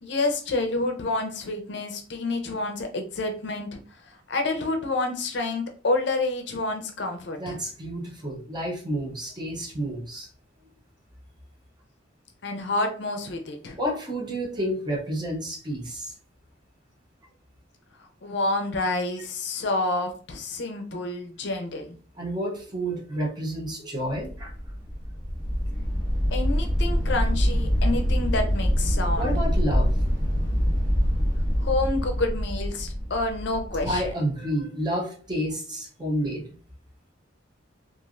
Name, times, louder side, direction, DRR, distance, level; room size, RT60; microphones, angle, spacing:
voice 1, 0.0-3.8 4.1-7.6 12.4-13.8 18.2-21.9 26.3-29.4 31.6-34.1, left 2 dB, 60° left, 5 dB, 0.5 m, -28 dB
voice 2, 7.4-10.3 13.8-16.1 22.2-24.6 29.2-29.9 33.8-36.5, right 1 dB, 20° right, -1 dB, 0.7 m, -30 dB
sound 1, 24.2-34.1, equal, 45° right, 1.2 m, -25 dB
3.1 x 2.4 x 2.4 m, 0.41 s
head